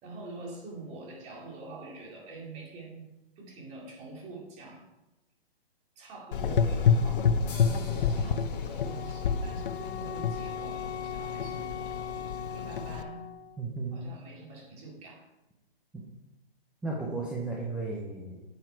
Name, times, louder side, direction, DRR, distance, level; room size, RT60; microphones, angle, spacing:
voice 1, 0.0-3.0 3.4-4.8 6.0-7.3 7.6-11.7 12.1-12.2 12.5-13.2 13.9-15.2, right 3 dB, 20° right, -1 dB, 2.4 m, -45 dB
Gurgling / Engine, 6.3-13.0, left 6 dB, 55° left, 0.8 m, -29 dB
sound 1, 7.5-11.0, left 4 dB, 40° left, 3.2 m, -52 dB
Wind instrument woodwind instrument, 8.8-13.6, left 6 dB, 90° left, 0.5 m, -40 dB
voice 2, 13.6-14.0 15.9-16.0 16.8-18.4, right 3 dB, 5° right, -4 dB, 0.6 m, -34 dB
9.5 x 8.2 x 4.5 m, 0.98 s
hypercardioid pair, 145°, 31 cm